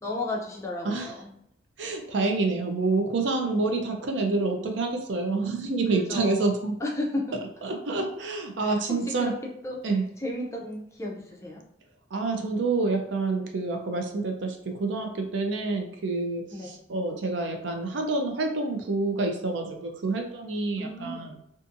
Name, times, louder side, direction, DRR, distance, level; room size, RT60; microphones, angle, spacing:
voice 1, 0.0-1.3 3.4-3.8 5.9-7.4 8.6-8.8 9.2-9.3 9.6-9.8 10.2-11.6 16.5-16.8 20.8-21.3, left 1 dB, 15° left, -2 dB, 0.4 m, -34 dB
voice 2, 1.8-6.7 7.6-9.3 9.8-10.0 12.1-21.4, right 3 dB, 80° right, 3 dB, 0.5 m, -28 dB
2.6 x 2.5 x 2.5 m, 0.75 s
head